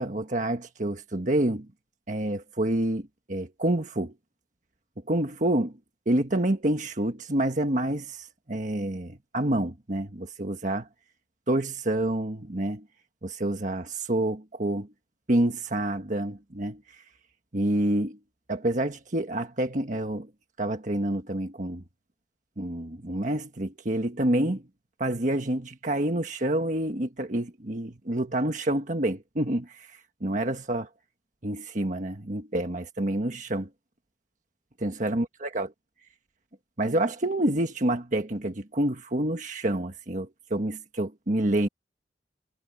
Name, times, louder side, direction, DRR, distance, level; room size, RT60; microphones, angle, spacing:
voice 1, 0.0-1.7 2.1-4.1 5.1-5.7 6.1-10.9 11.5-12.8 13.2-14.9 15.3-16.8 17.5-18.2 18.5-20.3 20.6-21.8 22.6-24.6 25.0-29.9 30.2-30.9 31.4-33.7 34.8-35.7 36.8-41.7, right 1 dB, 45° right, 1.5 m, -28 dB
head